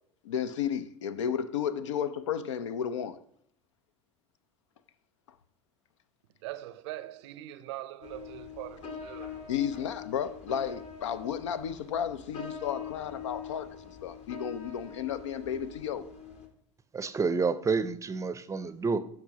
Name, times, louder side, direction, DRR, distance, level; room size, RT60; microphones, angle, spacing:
voice 1, 0.2-3.2 9.5-16.0, left 8 dB, 75° left, 0.5 m, -33 dB
voice 2, 6.4-9.5, right 15 dB, 65° right, 0.5 m, -42 dB
sound 1, 8.0-16.5, left 6 dB, 45° left, 1.3 m, -43 dB
voice 3, 16.9-19.0, right 4 dB, 20° right, 0.5 m, -29 dB
9.9 x 6.0 x 2.8 m
hypercardioid pair, 75°, 15 cm